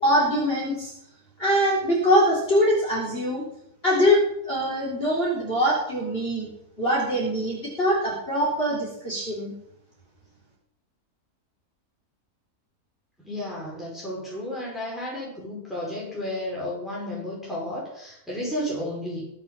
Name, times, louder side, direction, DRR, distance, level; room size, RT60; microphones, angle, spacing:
voice 1, 0.0-0.9 1.4-3.4 3.8-6.5 6.8-9.5, equal, 35° left, -6 dB, 4.2 m, -23 dB
voice 2, 13.3-19.2, left 1 dB, ahead, -5 dB, 5.8 m, -32 dB
21.5 x 7.5 x 7.1 m, 0.75 s
omnidirectional pair, 1.6 m